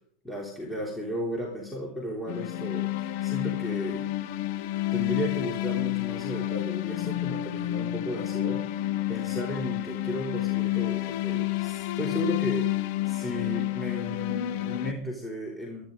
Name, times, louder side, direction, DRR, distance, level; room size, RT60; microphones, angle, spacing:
voice 1, 0.2-4.0 4.9-15.8, equal, 5° left, -2 dB, 3.4 m, -34 dB
sound 1, 2.3-14.9, left 15 dB, 60° left, 1.2 m, -29 dB
25.5 x 10.5 x 3.9 m, 0.65 s
hypercardioid pair, 90°, 0 cm